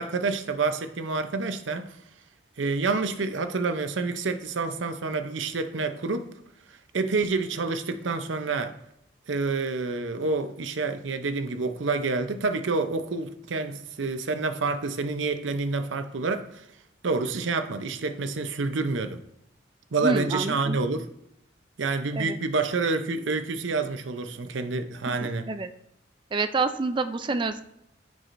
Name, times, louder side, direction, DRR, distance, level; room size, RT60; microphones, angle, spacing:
voice 1, 0.0-1.9 2.6-6.3 6.9-8.7 9.3-16.6 17.0-19.2 19.9-21.1 21.8-25.5, right 3 dB, 85° right, 0.7 m, -28 dB
voice 2, 20.0-20.8 22.1-22.4 25.1-25.2 25.5-25.7 26.3-27.6, right 3 dB, 25° right, 0.3 m, -27 dB
14.0 x 4.8 x 2.6 m
head